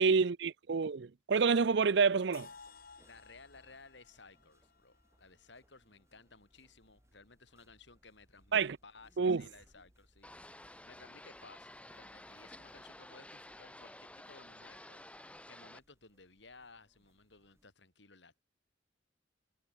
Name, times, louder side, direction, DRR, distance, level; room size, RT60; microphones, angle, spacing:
voice 1, 0.0-2.5 8.5-8.8 9.2-9.4, right 5 dB, 65° right, 0.5 m, -28 dB
sound 1, 1.5-17.7, equal, 15° right, 7.9 m, -70 dB
sound 2, 2.3-6.2, left 5 dB, 50° left, 4.6 m, -57 dB
voice 2, 3.1-18.4, left 3 dB, 70° left, 4.9 m, -58 dB
sound 3, 10.2-15.8, left 1 dB, 5° left, 5.9 m, -52 dB
head